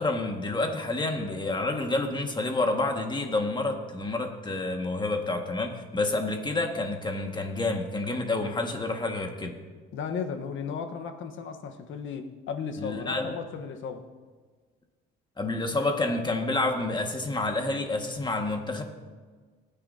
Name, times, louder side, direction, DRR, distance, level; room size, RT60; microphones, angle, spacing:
voice 1, 0.0-9.6 12.8-13.4 15.4-18.8, left 2 dB, 20° left, 3 dB, 1.7 m, -29 dB
voice 2, 9.9-14.0, left 6 dB, 75° left, 7 dB, 1.2 m, -35 dB
20.0 x 9.7 x 2.8 m, 1.5 s
cardioid pair, 90°, 20 cm